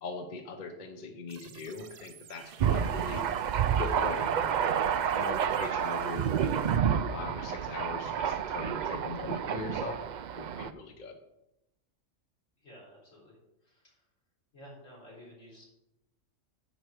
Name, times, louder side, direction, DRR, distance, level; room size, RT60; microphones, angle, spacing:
voice 1, 0.0-3.2 3.8-4.7 5.1-6.4 7.1-10.0 10.3-11.2, left 3 dB, 40° left, 5 dB, 0.9 m, -40 dB
sound 1, 1.3-6.8, right 7 dB, 55° right, 0.7 m, -49 dB
Thunder, 2.6-10.7, right 8 dB, 90° right, 0.4 m, -29 dB
voice 2, 12.6-13.4 13.6-14.0 14.5-15.7, equal, 80° left, -5 dB, 4.3 m, -52 dB
10.5 x 4.7 x 6.4 m, 0.89 s
omnidirectional pair, 1.3 m